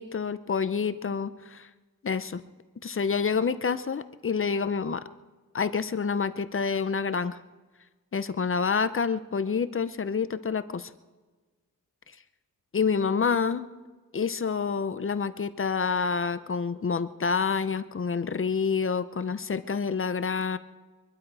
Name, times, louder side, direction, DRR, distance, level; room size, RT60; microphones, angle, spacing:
voice 1, 0.0-1.7 2.0-2.4 2.8-5.0 5.5-7.4 8.1-10.9 12.7-13.7 14.1-20.6, left 5 dB, 40° left, 13 dB, 0.7 m, -28 dB
23.5 x 12.0 x 4.8 m, 1.3 s
wide cardioid pair, 95°, 34 cm